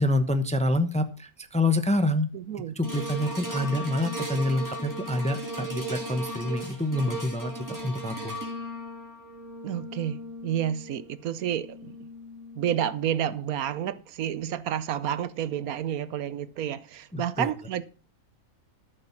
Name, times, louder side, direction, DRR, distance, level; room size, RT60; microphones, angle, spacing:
voice 1, 0.0-2.3 2.8-8.4 17.1-17.5, left 1 dB, 5° left, 0.7 m, -27 dB
voice 2, 2.3-2.7 9.6-12.1 12.6-17.9, right 10 dB, 80° right, 1.2 m, -30 dB
sound 1, 2.8-13.2 13.8-13.9, right 1 dB, 10° right, 2.8 m, -37 dB
13.5 x 6.8 x 5.9 m
omnidirectional pair, 1.6 m